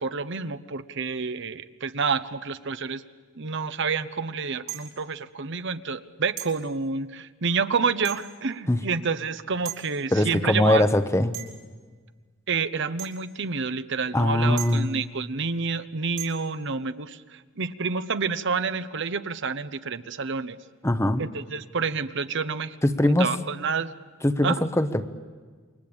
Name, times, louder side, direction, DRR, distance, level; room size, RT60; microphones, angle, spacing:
voice 1, 0.0-3.0 3.3-10.8 12.5-20.6 21.2-22.8 23.0-23.9 24.4-24.7, right 5 dB, 60° right, 12 dB, 0.9 m, -29 dB
sound 1, 4.7-5.0 6.4-6.6 8.0-8.4 9.6-9.8 11.3-11.7 13.0-13.2 14.6-15.0 16.2-16.5, right 13 dB, 90° right, 4.3 m, -37 dB
voice 2, 10.1-11.3 14.1-14.9 20.8-21.2 22.8-23.3 24.2-25.0, left 1 dB, 15° left, 10 dB, 1.0 m, -21 dB
28.5 x 24.0 x 8.8 m, 1.5 s
head